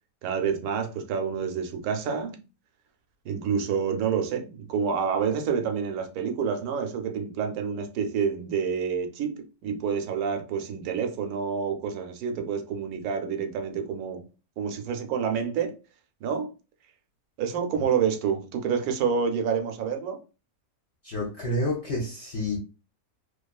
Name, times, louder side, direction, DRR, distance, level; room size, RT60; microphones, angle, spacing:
voice 1, 0.2-2.4 3.2-14.2 14.6-15.7 16.2-16.5 17.4-20.2, right 6 dB, 80° right, 1.0 m, -28 dB
voice 2, 21.0-22.6, left 1 dB, 60° left, 0.8 m, -29 dB
2.6 x 2.3 x 2.3 m
omnidirectional pair, 1.6 m